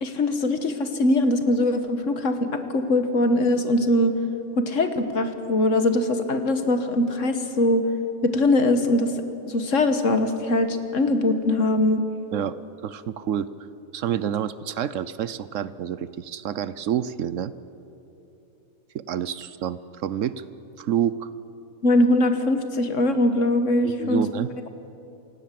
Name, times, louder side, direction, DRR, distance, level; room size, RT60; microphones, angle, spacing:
voice 1, 0.0-4.1 4.6-7.8 8.2-9.1 9.5-12.0 21.8-24.2, left 1 dB, 60° left, 8 dB, 1.7 m, -22 dB
voice 2, 12.8-13.5 13.9-17.5 18.9-20.4 20.8-21.3 23.8-24.5, right 10 dB, 65° right, 15 dB, 1.0 m, -28 dB
28.0 x 16.5 x 7.6 m, 2.9 s
omnidirectional pair, 1.5 m